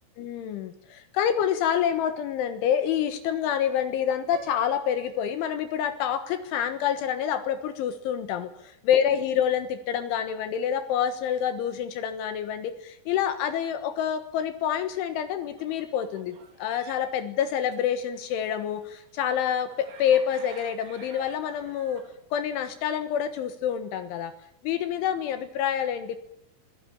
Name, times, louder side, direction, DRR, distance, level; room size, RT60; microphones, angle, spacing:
voice 1, 0.2-22.0 22.3-24.3 24.6-26.2, left 9 dB, 75° left, 9 dB, 3.7 m, -27 dB
Piano, 4.3-6.3, right 12 dB, 70° right, 2.5 m, -46 dB
sound 1, 15.6-22.2, right 6 dB, 50° right, 3.3 m, -50 dB
24.5 x 17.0 x 8.6 m, 0.76 s
omnidirectional pair, 5.7 m